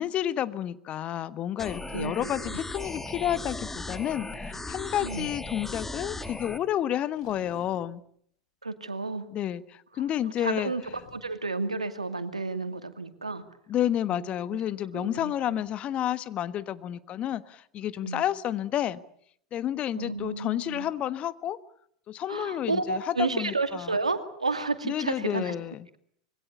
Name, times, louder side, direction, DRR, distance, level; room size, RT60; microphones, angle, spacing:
voice 1, 0.0-8.0 9.3-10.7 13.7-19.0 19.5-21.6 22.1-24.0 24.8-25.8, left 11 dB, 35° left, 15 dB, 1.4 m, -30 dB
sound 1, 1.6-6.6, left 2 dB, 10° left, 2.2 m, -37 dB
voice 2, 1.9-2.6 5.0-5.3 8.6-9.3 10.4-13.4 14.1-14.3 14.7-15.6 18.0-18.2 19.9-20.9 22.3-25.5, right 3 dB, 85° right, 9 dB, 2.3 m, -32 dB
sound 2, 4.2-5.4 7.1-8.0 10.7-11.4, left 6 dB, 60° left, 6.6 m, -52 dB
26.0 x 22.5 x 8.3 m, 0.66 s
figure-of-eight pair, 85°, 3 cm